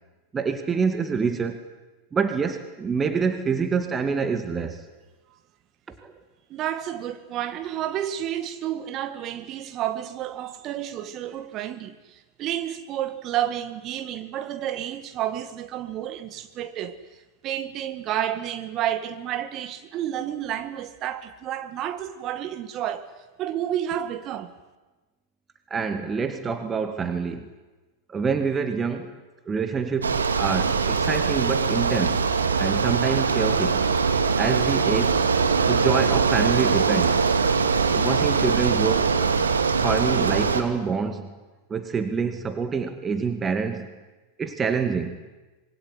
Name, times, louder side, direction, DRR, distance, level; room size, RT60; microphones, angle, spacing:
voice 1, 0.3-1.6 2.1-4.8 5.9-6.1 25.7-27.5 28.1-29.2 29.5-32.3 32.6-33.9 34.3-35.3 35.6-37.2 37.9-39.2 39.8-41.3 41.7-43.9 44.4-45.2, right 5 dB, 20° right, 2.3 m, -26 dB
voice 2, 6.5-17.0 17.4-23.1 23.4-24.5, right 11 dB, 35° right, 1.9 m, -30 dB
Bicycle, 30.0-40.6, right 5 dB, 75° right, 2.3 m, -22 dB
26.0 x 22.5 x 9.8 m
figure-of-eight pair, 90°, 0 cm